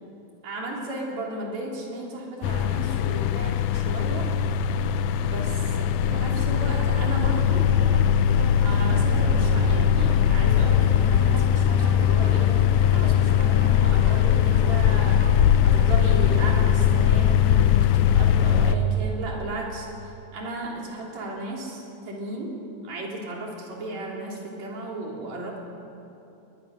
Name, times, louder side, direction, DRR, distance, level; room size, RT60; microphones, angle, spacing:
voice 1, 0.4-4.6 5.1-5.7 6.1-7.7 8.5-12.5 12.9-15.2 15.6-19.9 20.3-25.6, right 1 dB, 65° right, -2 dB, 4.7 m, -34 dB
sound 1, 2.4-18.7, left 9 dB, 80° left, 2.1 m, -20 dB
sound 2, 6.0-17.1, right 3 dB, 50° right, 2.9 m, -37 dB
22.0 x 21.0 x 6.5 m, 2.8 s
omnidirectional pair, 3.4 m